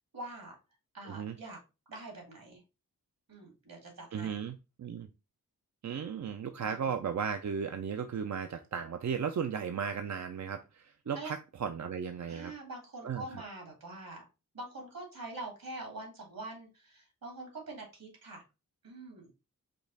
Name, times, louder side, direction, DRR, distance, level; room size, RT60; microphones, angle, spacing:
voice 1, 0.1-0.6 0.9-1.6 1.9-2.6 3.3-4.4 6.6-6.9 11.0-11.3 12.3-14.2 14.5-18.4 18.8-19.3, right 2 dB, 70° right, 1 dB, 2.3 m, -44 dB
voice 2, 4.1-5.1 5.8-12.5 13.0-13.4, right 7 dB, 50° right, 6 dB, 0.5 m, -36 dB
5.2 x 2.4 x 3.9 m, 0.29 s
wide cardioid pair, 85°, 35 cm